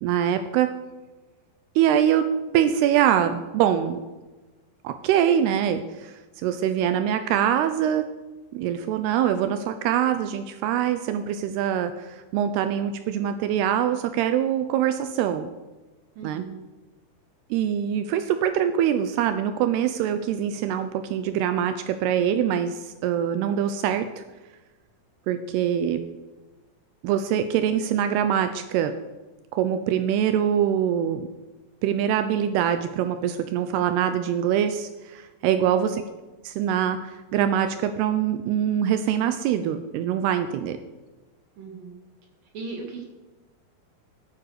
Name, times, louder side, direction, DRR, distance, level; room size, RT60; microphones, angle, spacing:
voice 1, 0.0-0.7 1.8-2.3 2.5-4.0 4.8-8.1 8.5-15.5 16.2-16.4 17.5-24.2 25.3-26.0 27.0-29.0 29.5-31.3 31.8-36.0 36.4-40.8, right 9 dB, 85° right, 9 dB, 2.7 m, -24 dB
voice 2, 16.2-16.6 41.6-42.0 42.5-43.1, right 4 dB, 60° right, 1 dB, 3.8 m, -37 dB
16.0 x 8.7 x 6.6 m, 1.2 s
omnidirectional pair, 4.7 m